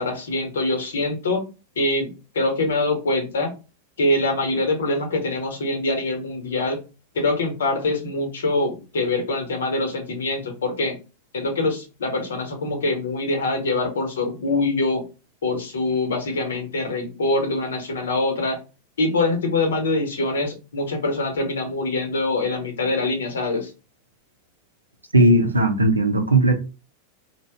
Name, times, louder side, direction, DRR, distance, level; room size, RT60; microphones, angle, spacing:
voice 1, 0.0-1.4 1.8-3.5 4.0-6.8 7.1-11.0 11.3-15.0 15.4-18.6 19.0-23.7, left 2 dB, 65° left, 0.8 m, -24 dB
voice 2, 25.1-26.5, right 1 dB, 80° right, 0.5 m, -17 dB
2.7 x 2.0 x 3.3 m
figure-of-eight pair, 90°, 0 cm